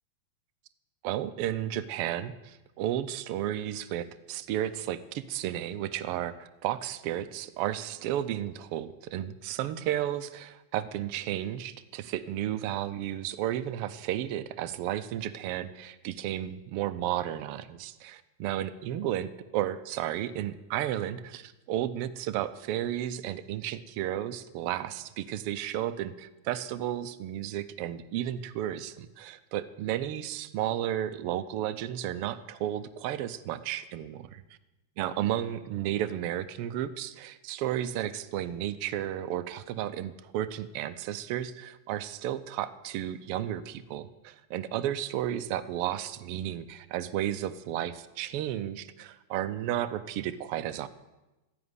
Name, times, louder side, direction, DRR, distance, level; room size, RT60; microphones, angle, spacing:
voice 1, 1.0-34.4 35.0-50.9, right 12 dB, 80° right, 12 dB, 1.3 m, -33 dB
14.0 x 10.0 x 9.7 m, 1.0 s
omnidirectional pair, 3.4 m